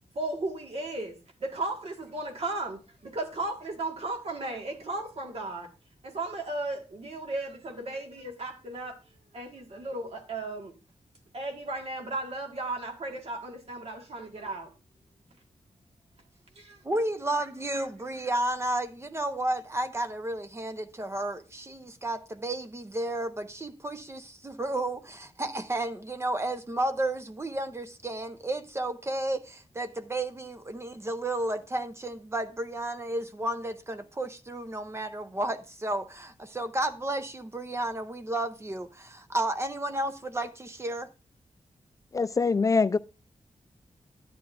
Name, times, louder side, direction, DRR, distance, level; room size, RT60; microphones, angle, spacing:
voice 1, 0.1-1.1 1.4-5.7 6.0-8.9 9.3-10.7 11.3-14.7 16.5-16.8, right 2 dB, 55° right, 1.7 m, -35 dB
voice 2, 16.8-41.1, right 1 dB, 20° right, 0.6 m, -32 dB
voice 3, 42.1-43.0, left 4 dB, 25° left, 0.3 m, -23 dB
10.5 x 9.4 x 2.5 m
wide cardioid pair, 165°, 13 cm